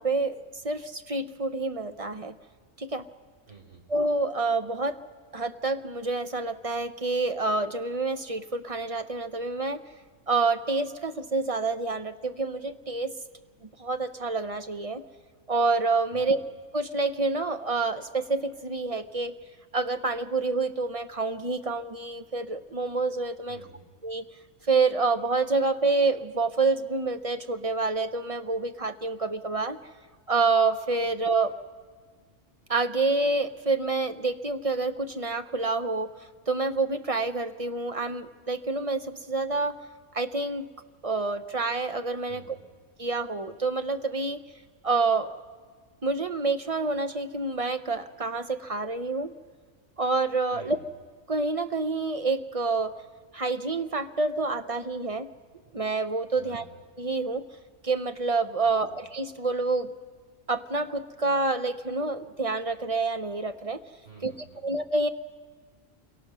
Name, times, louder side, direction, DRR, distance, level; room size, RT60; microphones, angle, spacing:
voice 1, 0.0-2.3 2.8-3.0 3.9-5.0 5.3-9.8 10.3-13.1 13.8-15.0 15.5-16.4 16.7-19.3 19.7-23.6 24.0-24.2 24.7-29.8 30.3-31.5 32.7-36.1 36.5-39.7 40.1-40.7 41.0-42.4 43.0-44.4 44.8-45.3 46.0-49.3 50.0-50.8 51.3-53.0 53.3-55.3 55.7-56.6 57.0-57.4 57.8-59.9 60.5-63.8 64.2-64.3 64.6-65.1, right 3 dB, 30° right, 9 dB, 0.8 m, -27 dB
voice 2, 3.5-3.8 16.1-16.4 23.5-23.9 42.3-42.6 50.5-50.9 56.3-56.7 58.6-59.0 64.0-64.6, right 5 dB, 65° right, -1 dB, 4.7 m, -50 dB
28.0 x 23.0 x 6.2 m, 1.5 s
omnidirectional pair, 1.3 m